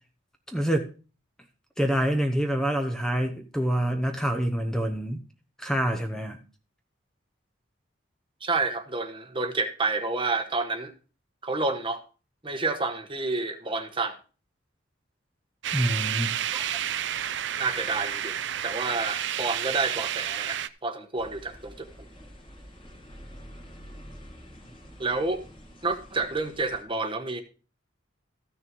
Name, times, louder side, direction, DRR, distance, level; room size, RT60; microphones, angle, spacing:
voice 1, 0.5-0.9 1.8-5.2 5.6-6.4 15.7-16.3, right 1 dB, 5° left, 0.9 m, -26 dB
voice 2, 8.4-10.9 11.4-12.0 12.4-14.1 16.5-16.7 17.6-18.4 18.6-21.9 25.0-25.4 25.8-27.4, right 3 dB, 25° right, 1.1 m, -29 dB
sound 1, 15.6-20.7, right 10 dB, 60° right, 0.5 m, -30 dB
sound 2, 21.2-26.8, equal, 25° left, 2.0 m, -47 dB
14.0 x 6.4 x 4.6 m
head